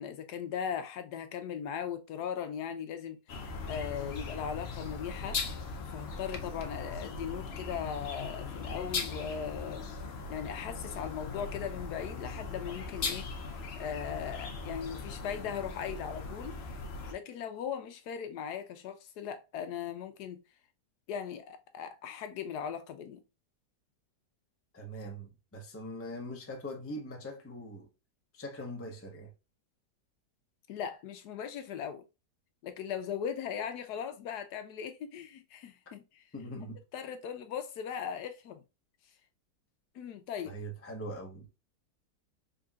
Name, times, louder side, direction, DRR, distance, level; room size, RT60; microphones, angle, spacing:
voice 1, 0.0-5.4 5.9-9.8 10.3-13.3 13.8-16.6 17.1-20.4 21.1-23.2 30.7-32.0 32.6-36.2 36.9-38.6 39.9-40.6, left 8 dB, 70° left, 1.1 m, -38 dB
sound 1, 3.3-17.1, left 4 dB, 55° left, 0.7 m, -39 dB
voice 2, 24.7-27.9 28.3-29.3 36.3-36.8 40.4-41.5, equal, 15° left, 0.5 m, -42 dB
3.8 x 3.6 x 2.3 m
omnidirectional pair, 1.9 m